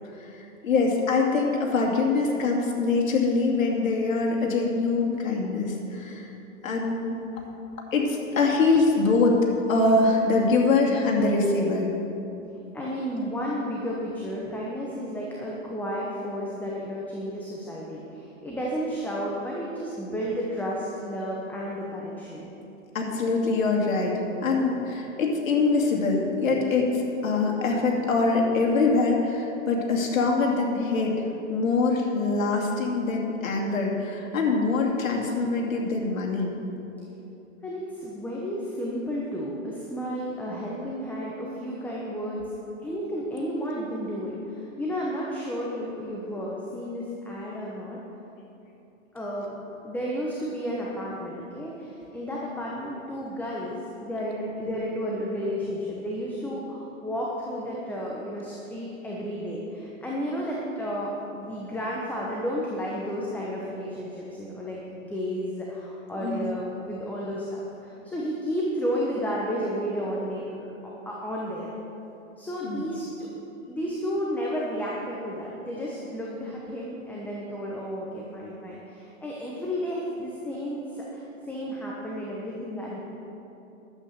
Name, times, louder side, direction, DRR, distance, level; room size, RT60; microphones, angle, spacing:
voice 1, 0.2-6.3 6.6-7.2 7.9-9.4 9.7-11.9 22.9-36.5 66.1-66.4 72.6-72.8, left 3 dB, 80° left, 0 dB, 2.6 m, -24 dB
voice 2, 12.7-22.5 37.6-42.5 42.8-48.0 49.1-71.7 72.4-73.3 73.7-83.1, equal, 5° left, -4 dB, 1.0 m, -32 dB
11.5 x 8.3 x 6.6 m, 2.9 s
hypercardioid pair, 140°, 40 cm